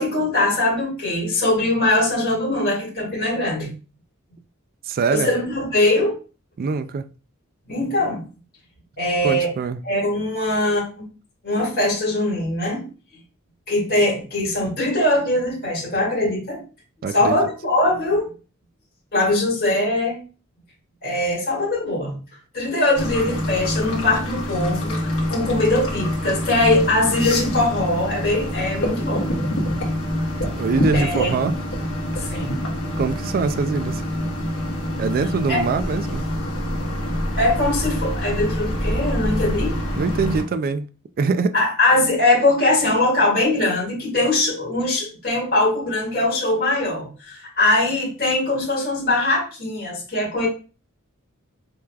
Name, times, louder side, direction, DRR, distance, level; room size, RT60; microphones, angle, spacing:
voice 1, 0.0-3.7 5.1-6.2 7.7-8.2 9.0-9.5 9.8-11.0 11.4-12.8 13.7-16.6 17.1-18.3 19.1-20.2 21.0-22.1 22.5-29.3 30.9-31.3 32.2-32.6 35.5-35.6 37.4-39.8 41.5-50.5, left 2 dB, 45° left, 2.0 m, -21 dB
voice 2, 4.8-5.3 6.6-7.1 9.2-9.8 17.0-17.4 30.5-31.6 33.0-34.0 35.0-36.2 39.9-40.9 41.2-41.6, right 4 dB, 45° right, 0.3 m, -23 dB
sound 1, 22.9-40.4, equal, 65° left, 1.3 m, -26 dB
4.7 x 3.3 x 2.3 m
head